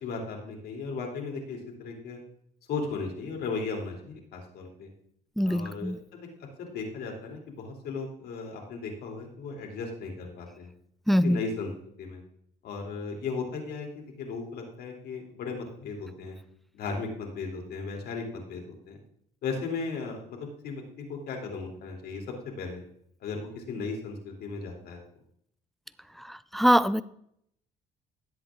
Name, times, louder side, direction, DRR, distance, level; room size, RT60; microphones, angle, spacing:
voice 1, 0.0-2.2 2.7-4.9 5.4-6.3 6.6-10.7 11.2-11.7 12.0-12.2 12.6-16.4 16.7-19.0 19.4-22.2 22.6-22.8 23.2-25.0, left 4 dB, 70° left, 1 dB, 3.3 m, -36 dB
voice 2, 5.4-6.0 11.1-11.4 26.3-27.0, equal, ahead, 16 dB, 0.4 m, -23 dB
17.5 x 7.8 x 3.8 m, 0.71 s
cardioid pair, 110°, 17 cm